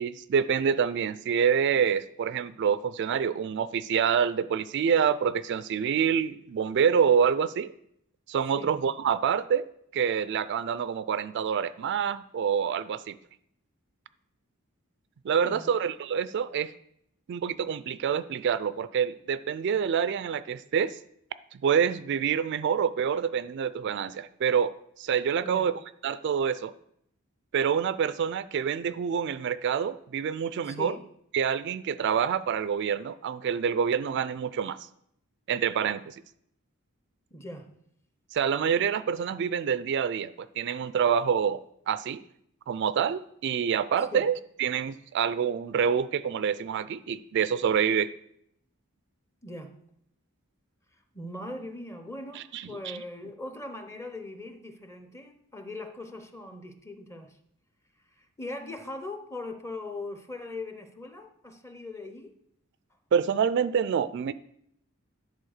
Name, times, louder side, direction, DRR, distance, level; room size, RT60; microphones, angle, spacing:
voice 1, 0.0-7.7 8.3-9.7 9.9-13.2 15.2-16.7 17.3-21.0 21.5-24.7 25.0-26.7 27.5-31.0 31.3-34.8 35.5-36.2 38.3-42.2 42.7-48.1 52.4-53.0 63.1-64.3, right 7 dB, 55° right, 15 dB, 0.3 m, -27 dB
voice 2, 15.4-15.8 25.4-25.7 30.6-31.0 37.3-37.7 44.1-44.3 49.4-49.7 51.1-57.3 58.2-62.3, left 2 dB, 15° left, 7 dB, 0.7 m, -40 dB
10.5 x 4.0 x 6.5 m, 0.73 s
head